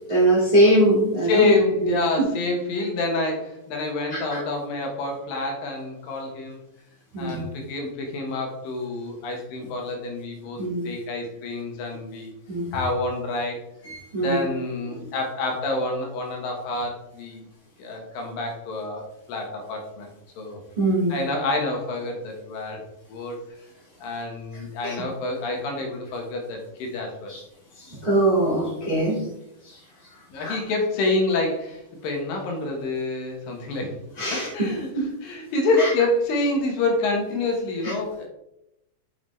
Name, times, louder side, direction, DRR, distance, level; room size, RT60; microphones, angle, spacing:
voice 1, 0.1-1.4 4.1-4.4 7.1-7.4 10.6-10.9 12.5-12.7 13.8-14.4 14.9-15.1 20.8-21.2 24.8-24.9 27.3-27.4 27.8-29.2 29.6-29.8 30.4-30.6 34.2-35.1 35.8-35.9 37.8-37.9, right 1 dB, 25° right, -5 dB, 0.9 m, -22 dB
voice 2, 1.2-6.6 7.2-12.3 12.7-13.6 14.2-17.4 17.8-20.6 21.1-22.8 23.1-23.5 24.0-27.3 30.3-34.0 34.3-38.2, left 2 dB, 75° left, 2 dB, 2.9 m, -27 dB
7.3 x 5.8 x 3.2 m, 0.84 s
omnidirectional pair, 4.0 m